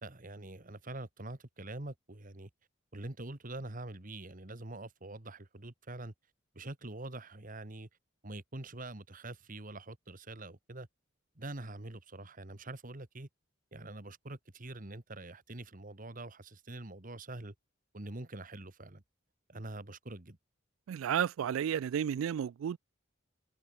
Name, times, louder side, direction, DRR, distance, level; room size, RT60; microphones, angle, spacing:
voice 1, 0.0-2.5 2.9-6.1 6.5-7.9 8.2-10.9 11.3-13.3 13.7-17.5 17.9-19.0 19.5-20.4, right 2 dB, 40° right, 1.7 m, -45 dB
voice 2, 20.9-22.8, right 9 dB, 80° right, 0.3 m, -32 dB
open air
head